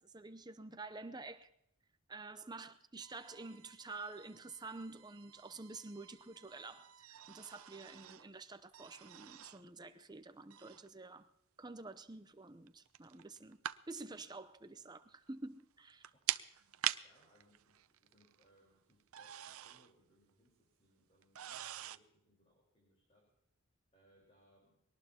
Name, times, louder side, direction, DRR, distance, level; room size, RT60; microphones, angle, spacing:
voice 1, 0.0-1.5 2.1-11.3 11.6-13.6 13.9-16.1 17.0-17.1, right 3 dB, 20° right, 0.7 m, -49 dB
sound 1, 3.0-8.3 8.7-9.7 10.5-10.9 12.7-13.8 14.2-14.3 15.6-15.7 15.9-18.6 18.9-19.9 20.3-20.4 21.2-22.0, right 12 dB, 80° right, 0.6 m, -45 dB
voice 2, 17.0-23.3 23.9-24.8, equal, 30° left, 4.2 m, -71 dB
22.0 x 18.5 x 2.9 m
head